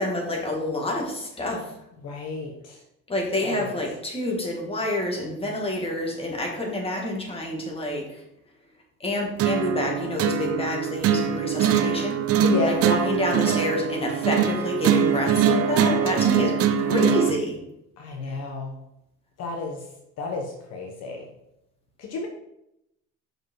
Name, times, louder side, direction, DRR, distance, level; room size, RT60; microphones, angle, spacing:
voice 1, 0.0-1.7 3.1-8.2 9.0-17.6 18.3-18.4, left 1 dB, 20° left, -1 dB, 2.4 m, -28 dB
voice 2, 2.0-2.8 3.4-3.7 12.4-12.8 15.6-16.6 18.0-18.7 19.4-19.8 20.2-21.2 22.0-22.3, left 3 dB, 55° left, 1 dB, 1.3 m, -31 dB
sound 1, 9.4-17.4, right 8 dB, 50° right, 0.7 m, -22 dB
6.3 x 5.4 x 4.8 m, 0.82 s
cardioid pair, 110°, 30 cm